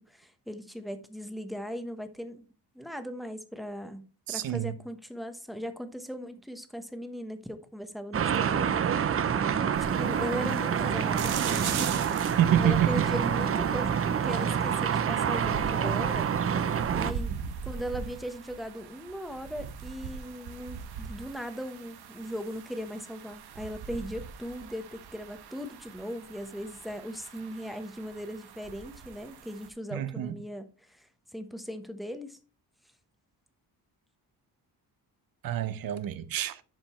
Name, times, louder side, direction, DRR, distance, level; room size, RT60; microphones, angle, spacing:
voice 1, 0.1-2.4 2.7-9.0 9.4-12.2 12.6-16.3 16.9-32.4, equal, ahead, 1.0 m, -38 dB
voice 2, 4.3-4.8 12.4-13.0 29.9-30.4 35.4-36.6, right 11 dB, 65° right, 0.9 m, -27 dB
sound 1, 8.1-17.1, right 7 dB, 35° right, 0.7 m, -27 dB
sound 2, 9.7-29.7, right 7 dB, 80° right, 1.5 m, -41 dB
11.0 x 5.2 x 4.3 m
cardioid pair, 145°, 38 cm